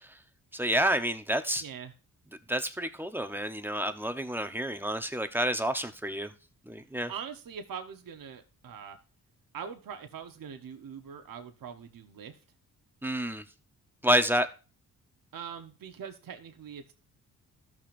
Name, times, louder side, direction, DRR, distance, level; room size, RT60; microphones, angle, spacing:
voice 1, 0.5-1.6 2.5-6.3 6.7-7.1 13.0-13.4 14.0-14.5, right 1 dB, 5° right, 0.9 m, -29 dB
voice 2, 1.6-1.9 7.1-9.0 9.5-12.4 15.3-16.9, right 7 dB, 60° right, 1.0 m, -42 dB
13.5 x 6.0 x 2.6 m
cardioid pair, 60°, 38 cm